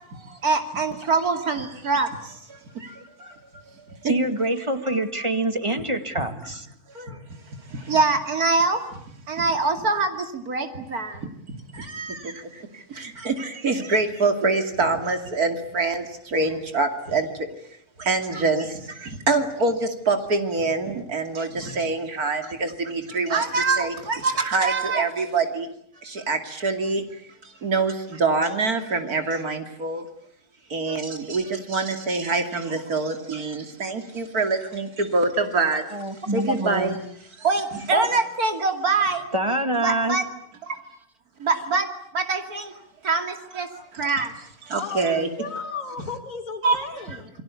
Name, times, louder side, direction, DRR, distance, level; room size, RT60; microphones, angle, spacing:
voice 1, 0.1-3.4 3.9-4.1 5.8-5.9 6.9-7.2 7.7-17.3 18.0-25.7 26.0-27.2 27.6-30.1 30.7-35.8 36.3-36.9 37.4-39.3 39.8-40.2 40.6-40.7 41.4-41.9 42.1-42.7 43.0-44.3 44.6-45.3 46.6-46.8 47.1-47.2, right 3 dB, 90° right, 6 dB, 3.1 m, -25 dB
voice 2, 4.0-6.7 35.9-37.0 37.9-38.1 39.3-40.2, right 1 dB, 20° right, 8 dB, 2.1 m, -25 dB
voice 3, 44.8-47.3, left 4 dB, 65° left, 1 dB, 2.7 m, -34 dB
29.0 x 22.5 x 8.4 m, 0.68 s
omnidirectional pair, 1.5 m